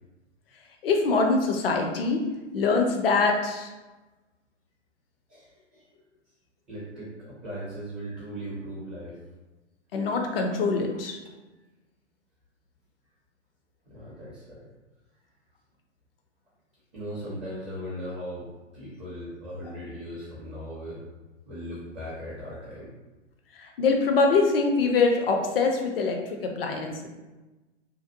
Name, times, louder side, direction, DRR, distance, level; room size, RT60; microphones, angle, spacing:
voice 1, 0.8-2.2 2.5-3.7 9.9-11.2 23.6-27.1, left 4 dB, 50° left, 3 dB, 0.5 m, -24 dB
voice 2, 5.3-5.9 6.7-9.2 13.9-14.7 16.9-18.5 18.7-21.0 21.5-22.9, equal, 15° right, -8 dB, 0.4 m, -38 dB
2.6 x 2.1 x 2.6 m, 1.1 s
figure-of-eight pair, 110°, 36 cm